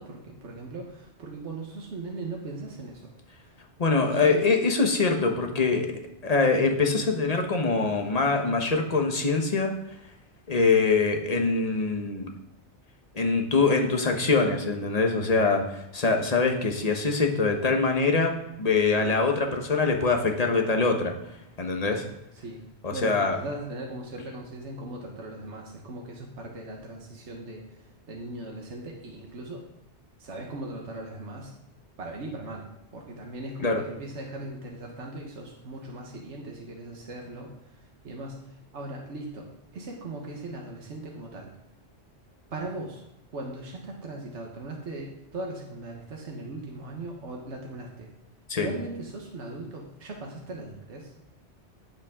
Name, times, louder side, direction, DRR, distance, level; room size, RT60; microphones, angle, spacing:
voice 1, 0.0-3.1 3.9-4.5 22.3-22.6 22.9-27.8 28.1-29.6 30.2-31.5 32.0-32.7 32.9-41.5 42.5-43.0 43.3-48.1 48.5-51.1, right 2 dB, 80° right, 0 dB, 1.5 m, -39 dB
voice 2, 3.8-9.7 10.5-12.3 13.1-18.3 18.6-21.1 21.6-22.0 22.8-23.4 33.6-33.8 48.5-48.7, left 4 dB, 35° left, 3 dB, 1.2 m, -24 dB
15.5 x 5.5 x 3.7 m, 0.88 s
omnidirectional pair, 1.2 m